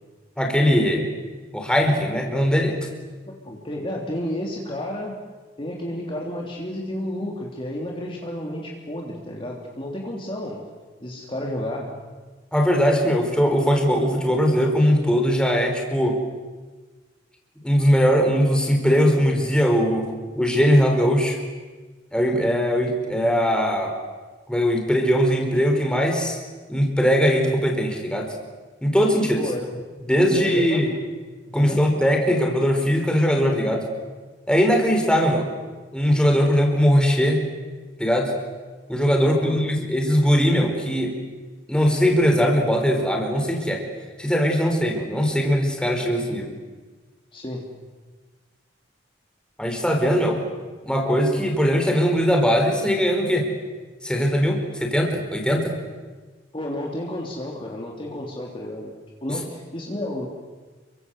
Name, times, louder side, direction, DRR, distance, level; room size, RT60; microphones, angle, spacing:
voice 1, 0.4-1.1 1.5-2.7 12.5-16.2 17.6-21.4 22.1-23.9 24.5-26.4 26.7-28.3 28.8-29.4 30.1-30.9 31.5-33.8 34.5-35.5 35.9-37.4 38.0-38.3 38.9-41.1 41.7-43.8 44.2-46.5 49.6-50.4 50.8-53.5 54.0-55.7 59.3-59.4, equal, 5° left, 2 dB, 4.8 m, -20 dB
voice 2, 3.4-5.2 5.6-10.6 11.0-11.9 29.4-29.8 30.3-30.8 31.5-31.8 39.2-39.6 47.3-47.7 56.5-58.9 59.2-60.3, left 1 dB, 30° left, -1 dB, 3.4 m, -31 dB
30.0 x 24.0 x 8.2 m, 1.3 s
head